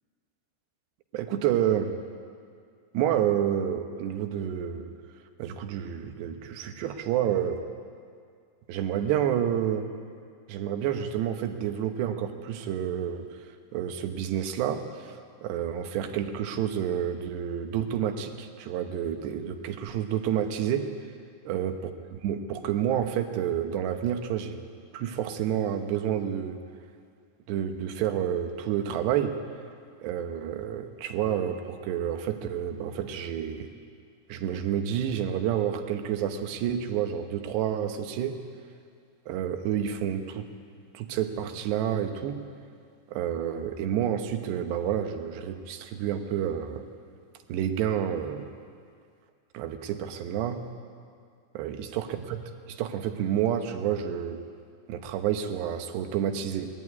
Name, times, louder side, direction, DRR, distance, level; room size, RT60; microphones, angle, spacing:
voice 1, 1.1-1.9 2.9-4.9 5.4-7.6 8.7-9.9 10.5-13.3 13.7-20.9 21.5-24.6 24.9-26.6 27.5-29.3 30.0-33.7 34.3-38.4 39.3-40.5 40.9-42.4 43.1-46.9 47.5-48.5 49.5-50.6 51.5-52.4 52.7-54.4 54.9-56.7, right 9 dB, 85° right, 6 dB, 3.3 m, -29 dB
20.5 x 14.0 x 9.6 m, 2.2 s
omnidirectional pair, 4.8 m